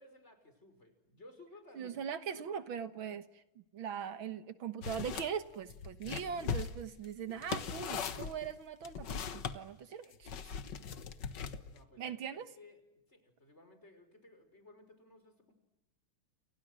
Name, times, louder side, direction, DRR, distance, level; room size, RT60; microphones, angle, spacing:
voice 1, 0.0-2.0 2.3-2.7 11.7-12.8 13.1-15.5, left 2 dB, 30° left, 7 dB, 5.8 m, -58 dB
voice 2, 1.7-10.5 12.0-12.5, right 7 dB, 70° right, 12 dB, 2.0 m, -41 dB
sound 1, 4.8-5.3 5.7-9.6 10.3-11.8, left 6 dB, 55° left, 1.9 m, -39 dB
29.5 x 29.0 x 6.4 m, 0.90 s
omnidirectional pair, 2.4 m